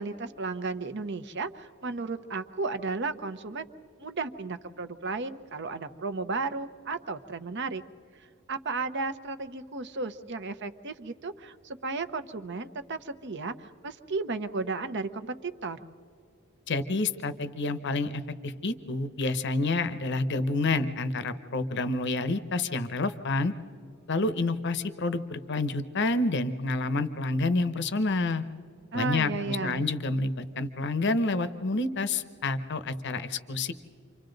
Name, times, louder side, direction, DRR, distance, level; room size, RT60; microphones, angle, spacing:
voice 1, 0.0-3.7 4.0-7.8 8.5-15.8 28.9-29.8, right 3 dB, 60° right, 10 dB, 0.9 m, -34 dB
voice 2, 16.7-23.5 24.1-28.4 28.9-33.7, left 2 dB, 55° left, 12 dB, 0.8 m, -28 dB
30.0 x 25.0 x 3.9 m, 2.4 s
head